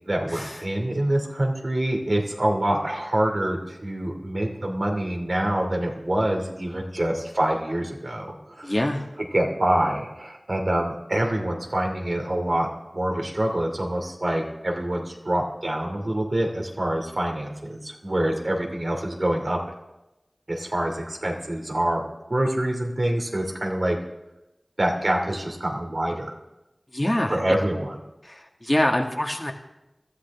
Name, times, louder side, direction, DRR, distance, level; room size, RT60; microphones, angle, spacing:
voice 1, 0.1-8.8 9.2-12.7 12.9-19.6 20.5-22.0 22.3-24.0 24.8-26.3 27.3-28.0, right 1 dB, 60° right, 1 dB, 2.7 m, -26 dB
voice 2, 8.6-9.0 26.9-27.4 28.3-29.5, left 1 dB, 30° left, 1 dB, 2.0 m, -24 dB
21.0 x 13.5 x 3.6 m, 0.96 s
wide cardioid pair, 40°, 0 cm